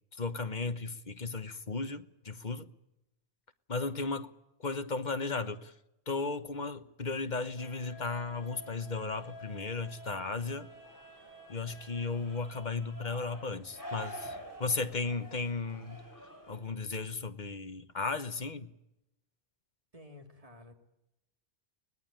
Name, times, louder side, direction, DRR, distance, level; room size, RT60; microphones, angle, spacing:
voice 1, 0.2-2.7 3.7-4.3 4.6-5.7 6.1-10.7 11.5-16.0 16.5-18.7, left 3 dB, 45° left, 1.2 m, -35 dB
sound 1, 7.6-16.6, equal, 15° left, 7.8 m, -48 dB
voice 2, 19.9-20.7, left 2 dB, 35° right, 3.1 m, -52 dB
24.5 x 19.0 x 8.9 m
omnidirectional pair, 1.1 m